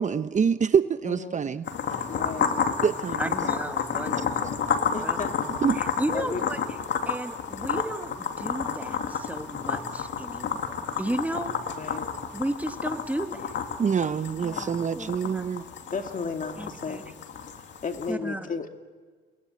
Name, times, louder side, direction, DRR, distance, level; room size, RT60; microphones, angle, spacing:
voice 1, 0.0-1.6 2.8-3.3 5.6-5.8 13.8-15.6, right 6 dB, 40° right, 12 dB, 0.8 m, -25 dB
voice 2, 1.0-1.5 2.1-2.5 4.9-5.3 6.1-6.4 11.8-12.1 15.6-17.1 17.4-18.7, left 5 dB, 40° left, 5 dB, 2.4 m, -34 dB
sound 1, 1.7-18.1, left 6 dB, 65° left, 2.5 m, -31 dB
voice 3, 3.2-4.6 5.0-5.2 5.7-6.6 7.1-11.8 12.3-13.5 14.4-15.7 16.6-17.0 18.1-18.5, right 1 dB, 10° right, 6 dB, 2.2 m, -34 dB
29.0 x 20.5 x 9.6 m, 1.5 s
cardioid pair, 90°, 20 cm